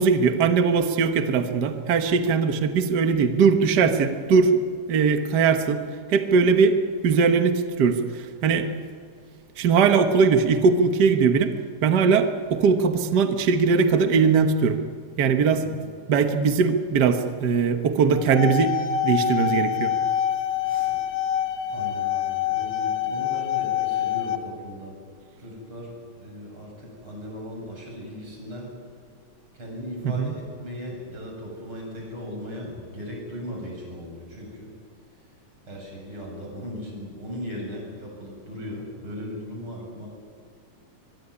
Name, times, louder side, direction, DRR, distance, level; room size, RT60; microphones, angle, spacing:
voice 1, 0.0-4.6 4.9-8.0 8.4-8.7 9.6-11.5 11.8-14.8 15.2-15.6 16.1-18.8 19.0-19.9 30.2-30.3, right 5 dB, 70° right, 7 dB, 0.9 m, -20 dB
sound 1, 18.1-24.4, left 10 dB, 85° left, 3.0 m, -26 dB
voice 2, 20.6-20.9 21.7-25.0 25.4-28.7 29.5-34.7 35.7-40.1, equal, 40° right, 0 dB, 8.1 m, -37 dB
23.0 x 23.0 x 9.9 m, 2.2 s
omnidirectional pair, 3.7 m